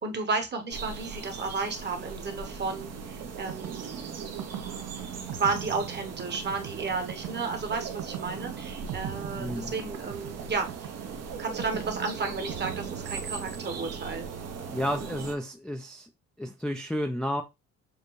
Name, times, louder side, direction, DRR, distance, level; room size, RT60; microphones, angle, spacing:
voice 1, 0.0-4.4 5.3-10.9 11.4-14.3, right 4 dB, 35° right, 5 dB, 1.1 m, -33 dB
sound 1, 0.7-15.3, right 6 dB, 55° right, 0.9 m, -39 dB
sound 2, 3.2-13.7, right 10 dB, 80° right, 0.6 m, -41 dB
voice 2, 9.4-9.7 14.7-16.1 16.4-17.4, equal, 5° left, 5 dB, 0.4 m, -31 dB
6.7 x 2.2 x 3.1 m, 0.24 s
cardioid pair, 90°, 30 cm